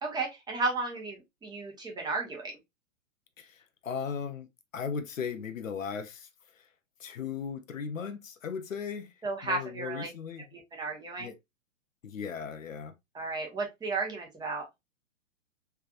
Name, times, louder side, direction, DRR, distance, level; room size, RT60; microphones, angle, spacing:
voice 1, 0.0-2.6 9.2-10.1 10.5-11.3 13.1-14.7, right 3 dB, 10° right, 1.0 m, -34 dB
voice 2, 3.4-4.5 4.7-6.3 7.0-9.1 9.4-10.5 11.2-11.3 12.0-12.9, left 6 dB, 75° left, 0.8 m, -37 dB
3.4 x 3.2 x 2.4 m
figure-of-eight pair, 115°, 39 cm